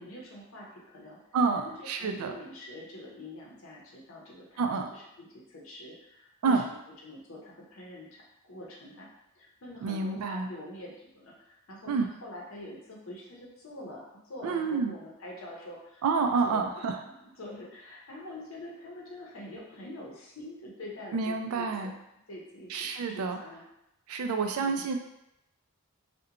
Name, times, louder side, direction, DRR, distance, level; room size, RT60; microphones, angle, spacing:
voice 1, 0.0-1.2 1.6-4.6 4.9-6.8 7.0-9.1 9.3-21.9 22.3-23.6 24.6-25.0, left 1 dB, 65° left, -3 dB, 0.6 m, -45 dB
voice 2, 1.3-2.3 4.6-4.9 6.4-6.6 9.8-10.5 11.9-12.1 14.4-14.9 16.0-17.0 21.1-21.9 22.7-23.4 24.1-25.0, right 4 dB, 80° right, 5 dB, 0.3 m, -28 dB
2.4 x 2.1 x 2.8 m, 0.84 s
head